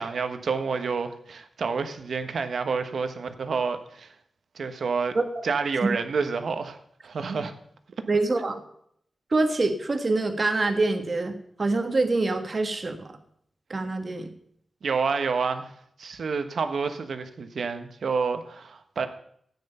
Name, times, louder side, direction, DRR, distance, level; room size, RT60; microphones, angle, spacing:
voice 1, 0.0-4.1 4.5-5.2 5.4-7.5 14.8-15.7 16.0-19.1, right 5 dB, 70° right, 1.3 m, -29 dB
voice 2, 8.1-8.6 9.3-13.2 13.7-14.3, right 3 dB, 35° right, 1.6 m, -25 dB
13.5 x 9.3 x 5.6 m
wide cardioid pair, 135°, 0 cm